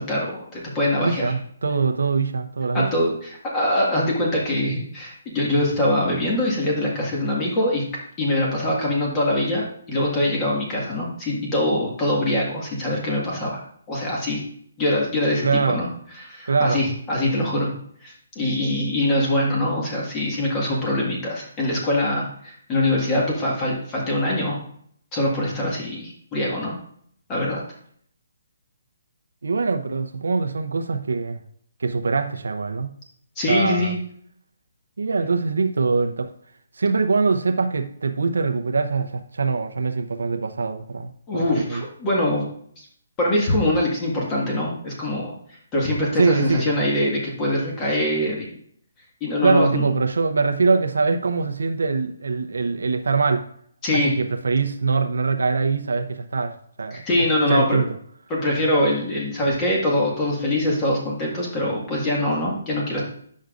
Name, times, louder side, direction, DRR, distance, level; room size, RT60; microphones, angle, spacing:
voice 1, 0.0-1.3 2.7-7.8 8.2-13.6 13.9-14.4 14.8-15.9 16.2-17.7 18.0-24.6 25.1-26.7 27.3-27.6 33.4-33.9 41.3-42.5 42.8-42.9 43.2-45.3 45.7-48.5 49.2-49.9 53.8-54.1 56.9-57.8 58.3-63.0, left 1 dB, 20° left, -3 dB, 1.8 m, -23 dB
voice 2, 1.0-2.9 15.4-15.8 16.5-16.8 29.4-31.4 31.8-32.9 33.5-33.9 35.0-36.3 36.8-41.8 46.2-46.7 49.4-53.5 53.9-57.0 57.5-57.9, right 4 dB, 90° right, 7 dB, 0.7 m, -23 dB
9.3 x 6.4 x 2.5 m, 0.64 s
hypercardioid pair, 165°, 0 cm